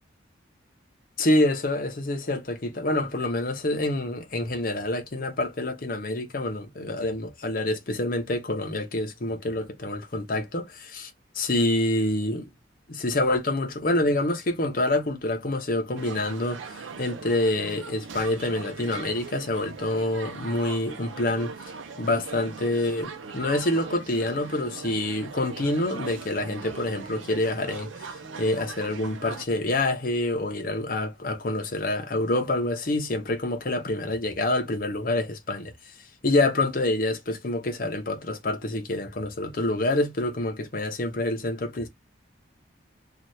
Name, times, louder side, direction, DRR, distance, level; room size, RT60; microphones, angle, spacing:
voice 1, 1.2-12.5 12.9-21.5 22.0-27.9 28.4-35.7 36.2-41.9, left 1 dB, 45° left, 0.7 m, -27 dB
sound 1, 16.0-29.5, right 5 dB, 75° right, 0.6 m, -40 dB
2.7 x 2.4 x 3.2 m
head